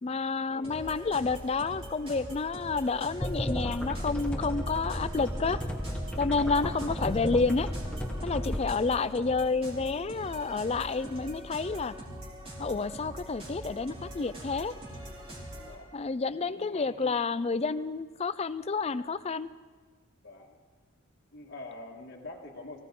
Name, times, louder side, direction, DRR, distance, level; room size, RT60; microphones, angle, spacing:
voice 1, 0.0-5.6 6.2-7.7 8.2-11.9 12.6-14.7 15.9-19.5, left 4 dB, 30° left, 15 dB, 0.4 m, -30 dB
sound 1, 0.6-15.8, right 1 dB, 25° right, 3.7 m, -43 dB
sound 2, 3.2-8.6, equal, 5° left, 1.2 m, -33 dB
voice 2, 6.4-6.8 8.4-8.6 15.5-15.9 16.4-17.2 20.2-20.6 21.3-22.8, left 2 dB, 50° left, -2 dB, 1.7 m, -45 dB
23.5 x 16.0 x 3.8 m, 1.4 s
head